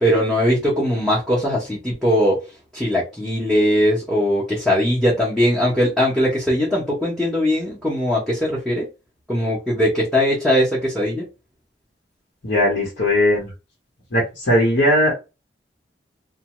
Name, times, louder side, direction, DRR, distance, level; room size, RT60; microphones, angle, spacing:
voice 1, 0.0-2.4 2.7-8.9 9.3-11.2, equal, ahead, 0.9 m, -20 dB
voice 2, 12.4-13.5 14.1-15.1, left 1 dB, 70° left, 1.1 m, -18 dB
2.7 x 2.2 x 3.0 m
head